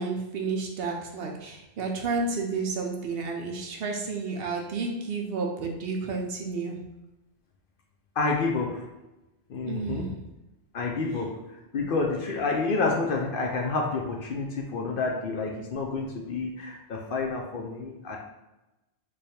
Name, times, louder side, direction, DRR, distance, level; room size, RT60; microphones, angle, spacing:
voice 1, 0.0-6.9 9.7-10.2 11.7-11.8, right 4 dB, 65° right, 1 dB, 0.7 m, -31 dB
voice 2, 8.2-8.9 9.5-10.1 10.7-18.2, left 3 dB, 60° left, 0 dB, 0.6 m, -29 dB
3.2 x 2.3 x 4.1 m, 1.0 s
omnidirectional pair, 1.2 m